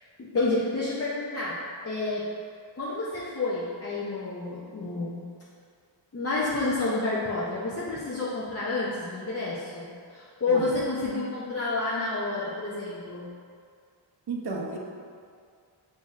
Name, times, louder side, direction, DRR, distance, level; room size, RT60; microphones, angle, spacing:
voice 1, 0.2-1.6 1.8-2.3 2.8-5.3 6.1-13.3, left 3 dB, 30° left, -8 dB, 0.5 m, -29 dB
voice 2, 14.3-14.8, right 3 dB, 55° right, -1 dB, 0.6 m, -33 dB
7.1 x 2.7 x 2.4 m, 2.2 s
wide cardioid pair, 130°, 48 cm